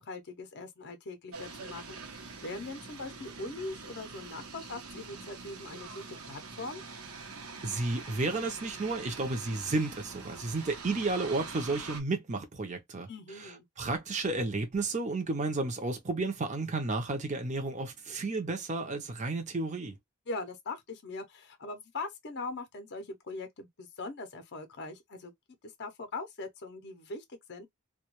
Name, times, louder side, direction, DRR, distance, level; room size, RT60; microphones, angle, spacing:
voice 1, 0.0-6.8 13.1-13.7 20.3-25.3 25.8-27.7, left 3 dB, 50° left, 0.5 m, -41 dB
sound 1, 1.3-12.0, right 4 dB, 75° right, 0.8 m, -45 dB
voice 2, 7.6-13.1 13.4-20.0, right 3 dB, 30° right, 0.6 m, -32 dB
2.2 x 2.2 x 2.9 m
head